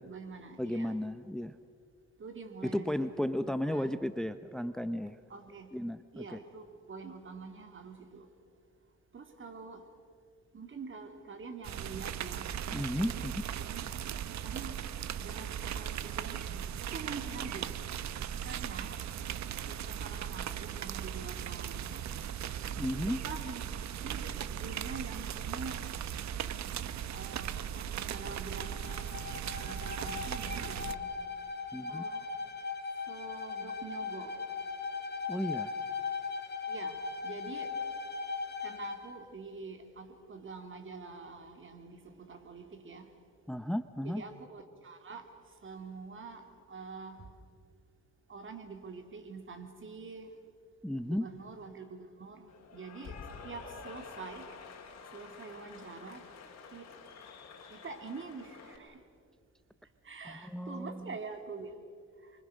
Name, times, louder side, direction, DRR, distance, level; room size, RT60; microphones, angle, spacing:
voice 1, 0.0-1.0 2.2-4.0 5.3-5.7 6.1-8.3 9.1-9.9 10.5-12.5 12.9-13.3 13.6-13.8 14.4-14.8 15.2-17.8 18.4-18.9 19.7-22.1 23.0-25.8 27.1-29.0 29.6-31.1 31.9-32.3 33.1-34.3 36.7-37.7 38.6-43.1 44.0-45.3 45.6-47.3 48.3-50.3 51.1-52.5 52.7-53.2 53.4-54.5 55.1-56.2 56.7-56.9 57.7-59.0 60.0-61.8, right 4 dB, 40° right, 5 dB, 3.5 m, -46 dB
voice 2, 0.6-1.6 2.6-5.2 5.7-6.4 12.7-13.4 22.8-23.2 31.7-32.1 35.3-35.7 43.5-44.2 50.8-51.3 60.2-61.2, equal, ahead, 11 dB, 0.8 m, -34 dB
sound 1, 11.6-30.9, right 9 dB, 65° right, 1.1 m, -38 dB
Bowed string instrument, 28.6-39.1, left 5 dB, 35° left, 3.5 m, -38 dB
Cheering / Applause, 52.5-58.8, left 5 dB, 60° left, 4.6 m, -49 dB
29.5 x 24.5 x 6.5 m, 2.3 s
cardioid pair, 90°, 30 cm